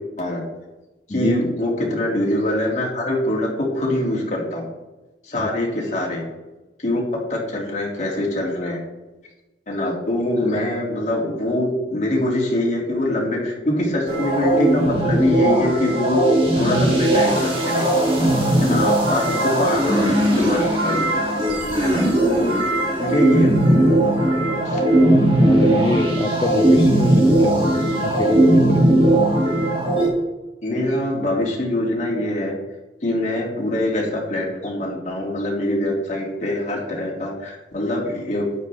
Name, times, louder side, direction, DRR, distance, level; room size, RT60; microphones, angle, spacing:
voice 1, 1.1-4.7 5.2-6.2 6.8-7.0 7.3-8.8 9.7-16.2 16.5-17.9 18.6-19.9 20.4-21.1 21.8-22.5 23.0-23.8 24.6-24.8 30.6-32.5 33.0-38.5, left 1 dB, 40° left, -2 dB, 2.6 m, -24 dB
sound 1, 14.1-30.1, right 1 dB, 30° right, 2.5 m, -18 dB
voice 2, 24.9-29.1, left 2 dB, 25° left, 7 dB, 0.4 m, -26 dB
12.0 x 9.7 x 3.5 m, 1.1 s
head